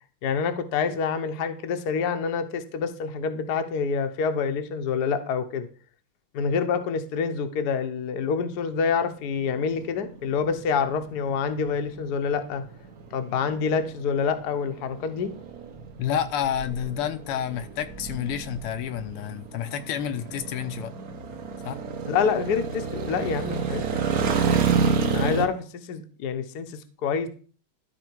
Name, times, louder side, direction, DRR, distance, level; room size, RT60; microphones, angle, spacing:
voice 1, 0.2-5.7 6.3-12.6 13.1-15.3 22.1-24.3 25.1-27.3, left 6 dB, 60° left, 1.2 m, -27 dB
sound 1, 9.3-25.5, right 6 dB, 55° right, 1.1 m, -30 dB
voice 2, 16.0-20.9 21.7-21.8, left 9 dB, 85° left, 1.7 m, -29 dB
12.0 x 4.3 x 4.6 m
omnidirectional pair, 2.4 m